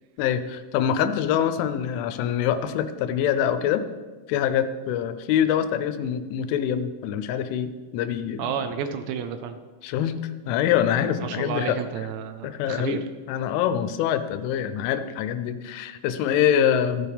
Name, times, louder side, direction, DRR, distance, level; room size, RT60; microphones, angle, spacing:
voice 1, 0.2-3.8 4.3-8.5 9.8-11.8 12.4-13.0 13.3-17.1, left 9 dB, 85° left, 11 dB, 3.2 m, -25 dB
voice 2, 8.4-9.6 11.2-13.0, right 7 dB, 80° right, 9 dB, 2.7 m, -31 dB
14.0 x 14.0 x 3.5 m, 1.3 s
omnidirectional pair, 5.5 m